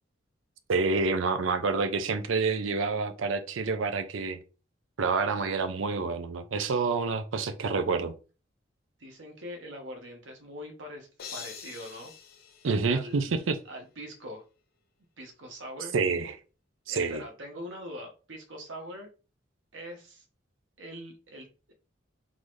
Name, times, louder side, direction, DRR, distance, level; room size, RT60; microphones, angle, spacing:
voice 1, 0.7-4.4 5.0-8.1 12.6-13.6 15.9-16.3 16.9-17.2, right 4 dB, 90° right, 0.5 m, -28 dB
voice 2, 9.0-12.1 12.9-14.4 15.2-15.9 16.9-19.1 19.7-20.2 20.8-21.7, equal, 70° right, 1.1 m, -43 dB
sound 1, 11.2-13.5, left 7 dB, 55° left, 0.7 m, -45 dB
3.9 x 2.6 x 3.1 m
head